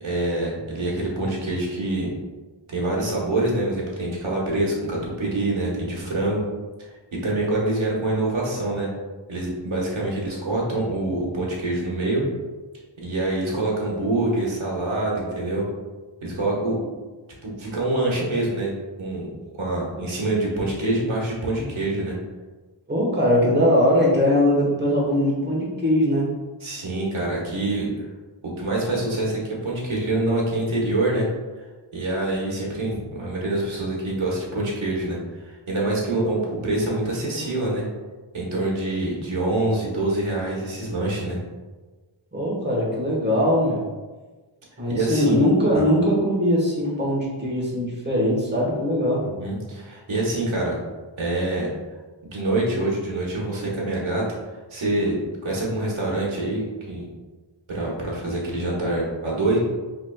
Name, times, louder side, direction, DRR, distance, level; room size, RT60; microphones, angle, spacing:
voice 1, 0.0-2.1 2.7-6.4 6.8-8.9 9.3-12.2 13.0-15.6 16.2-16.9 17.4-18.7 19.0-19.3 19.6-22.2 26.6-28.1 28.4-31.3 31.9-37.9 38.3-41.4 44.9-45.4 45.7-45.8 49.2-50.8 51.2-51.7 52.2-54.2 54.7-55.1 55.4-57.1 57.7-59.6, right 2 dB, 80° right, -4 dB, 1.2 m, -25 dB
voice 2, 22.9-26.3 42.3-43.8 44.8-49.3, equal, 20° right, -4 dB, 1.2 m, -21 dB
5.0 x 3.0 x 2.3 m, 1.3 s
wide cardioid pair, 70°, 47 cm